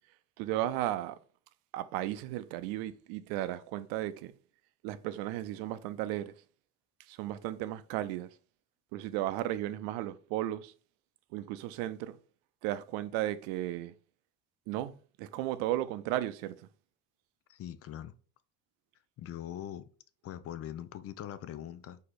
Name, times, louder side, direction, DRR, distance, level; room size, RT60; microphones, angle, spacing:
voice 1, 0.4-1.2 1.7-4.3 4.8-6.3 7.1-8.3 8.9-10.7 11.3-12.2 12.6-13.9 14.7-16.6, right 14 dB, 70° right, 0.5 m, -35 dB
voice 2, 17.5-18.1 19.2-19.9 20.2-22.0, left 11 dB, 40° left, 0.5 m, -42 dB
4.6 x 2.9 x 4.0 m
supercardioid pair, 85°, 36 cm